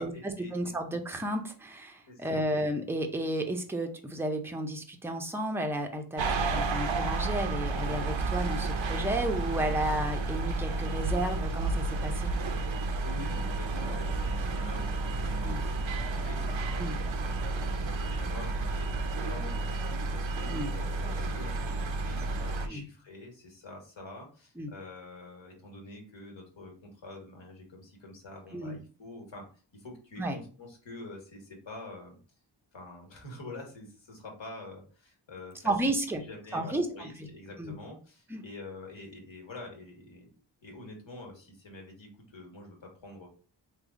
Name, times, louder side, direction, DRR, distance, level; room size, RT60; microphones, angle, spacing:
voice 1, 0.0-0.7 2.1-2.4 13.0-17.2 17.6-29.5 29.7-32.2 32.7-35.9 36.2-40.3 40.6-43.3, left 2 dB, 70° left, 1 dB, 1.4 m, -46 dB
voice 2, 0.5-11.7 12.0-12.3 15.4-15.7 16.8-17.0 20.5-20.7 22.7-22.8 24.6-24.7 28.5-28.8 30.2-30.4 35.6-36.2 36.5-37.1 37.6-37.8 38.3-38.4, right 1 dB, 5° right, 4 dB, 0.5 m, -32 dB
sound 1, 6.2-22.7, right 3 dB, 75° right, 0.6 m, -31 dB
3.4 x 2.1 x 3.6 m, 0.38 s
wide cardioid pair, 75°, 47 cm